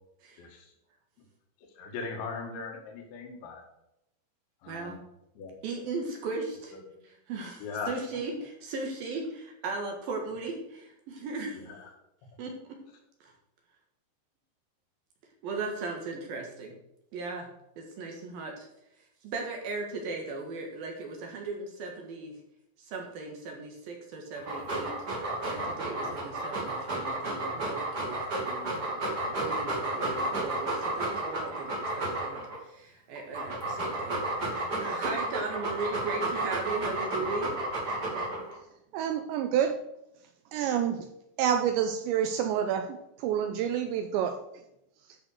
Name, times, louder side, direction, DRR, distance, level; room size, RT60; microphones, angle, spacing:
voice 1, 1.8-3.6 4.6-5.0 5.4-5.6 6.7-6.8 7.6-8.0 11.5-11.9, left 4 dB, 70° left, 2 dB, 3.9 m, -39 dB
voice 2, 4.7-5.0 5.6-6.8 7.0-11.6 12.4-12.5 13.2-13.3 15.4-16.7 17.1-17.5 17.8-18.7 19.2-22.4 22.8-24.9 25.4-34.2 34.5-37.5, right 3 dB, 65° right, 1 dB, 2.6 m, -37 dB
Dog, 24.4-32.6 33.2-38.6, right 2 dB, 30° right, 2.0 m, -32 dB
voice 3, 38.9-39.8 40.5-41.1 41.4-44.4, right 9 dB, 90° right, 6 dB, 2.6 m, -28 dB
11.0 x 6.4 x 6.4 m, 0.83 s
omnidirectional pair, 5.8 m